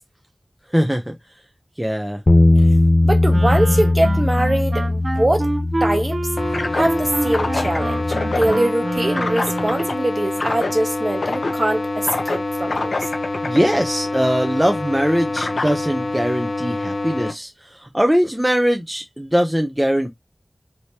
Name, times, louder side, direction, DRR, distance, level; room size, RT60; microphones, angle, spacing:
voice 1, 0.7-1.1 1.8-2.2 13.4-20.1, equal, 10° right, 0.6 m, -21 dB
sound 1, 2.3-8.5, left 2 dB, 50° left, 0.3 m, -19 dB
voice 2, 3.0-5.5 5.8-6.2 6.7-13.1, right 1 dB, 35° right, 1.1 m, -22 dB
Wind instrument woodwind instrument, 3.3-9.9, right 2 dB, 65° right, 0.7 m, -27 dB
sound 2, 6.4-17.3, left 2 dB, 90° left, 0.7 m, -25 dB
3.3 x 3.0 x 2.8 m
wide cardioid pair, 70°, 0 cm